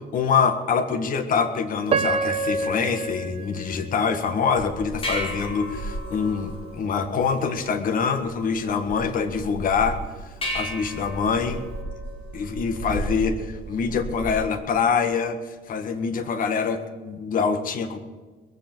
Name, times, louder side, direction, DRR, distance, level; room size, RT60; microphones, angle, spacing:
voice 1, 0.1-11.6 12.3-18.0, left 5 dB, 55° left, 8 dB, 1.7 m, -25 dB
Piano, 1.9-4.9 5.5-5.6 6.2-6.5, right 4 dB, 35° right, 1.4 m, -28 dB
sound 1, 4.6-14.5, equal, 35° left, 4.9 m, -34 dB
21.0 x 7.5 x 7.9 m, 1.4 s
cardioid pair, 110°, 17 cm